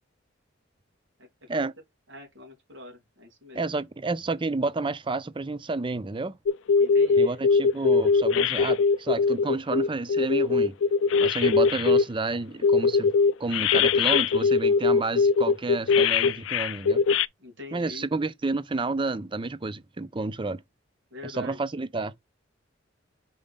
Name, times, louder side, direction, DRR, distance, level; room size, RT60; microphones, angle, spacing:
voice 1, 2.1-3.6 6.8-7.4 17.4-18.1 21.1-21.6, left 2 dB, 75° right, 3.8 m, -44 dB
voice 2, 3.5-6.3 7.2-10.8 11.2-13.1 13.4-17.0 17.7-20.6 21.2-22.1, right 3 dB, 25° right, 0.5 m, -30 dB
sound 1, 6.5-12.1 12.6-17.3, left 5 dB, 75° left, 0.4 m, -21 dB
5.5 x 5.1 x 3.6 m
head